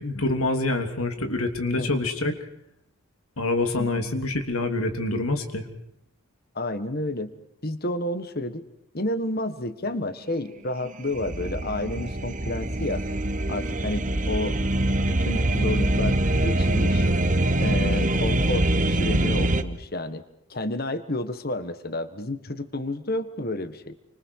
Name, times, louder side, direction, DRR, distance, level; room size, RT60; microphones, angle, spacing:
voice 1, 0.0-2.3 3.4-5.6, left 2 dB, 75° left, 5 dB, 3.3 m, -26 dB
voice 2, 3.8-4.1 6.5-7.3 7.6-8.6 8.9-13.0 13.5-14.6 15.0-17.0 17.6-20.2 20.5-23.9, left 1 dB, 45° left, 11 dB, 1.6 m, -30 dB
sound 1, 10.8-19.6, right 1 dB, 35° right, 1.2 m, -24 dB
29.5 x 26.5 x 4.8 m, 0.77 s
head